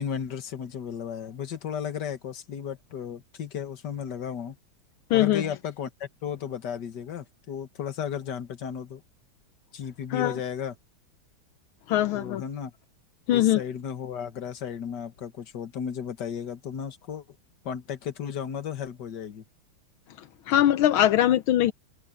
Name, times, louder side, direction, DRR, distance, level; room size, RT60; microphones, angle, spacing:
voice 1, 0.0-4.6 5.1-9.0 9.7-10.8 12.1-12.7 13.3-17.2 17.6-19.4 21.6-21.7, left 8 dB, 60° left, 2.1 m, -34 dB
voice 2, 5.1-5.4 10.1-10.4 11.9-12.4 13.3-13.6 20.5-21.7, left 12 dB, 80° left, 1.6 m, -21 dB
omnidirectional pair, 2.2 m